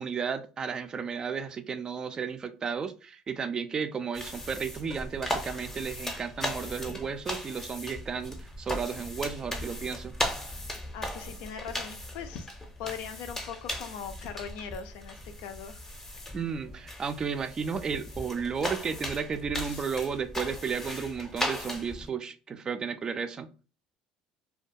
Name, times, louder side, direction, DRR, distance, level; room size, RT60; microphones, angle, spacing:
voice 1, 0.0-10.2 16.3-23.5, right 6 dB, 35° right, 0.3 m, -33 dB
sound 1, 4.1-22.1, left 1 dB, 15° left, 0.6 m, -37 dB
voice 2, 10.9-12.5 12.8-15.8 19.6-19.8, left 7 dB, 75° left, 0.4 m, -40 dB
2.3 x 2.2 x 2.5 m
supercardioid pair, 90°, 2 cm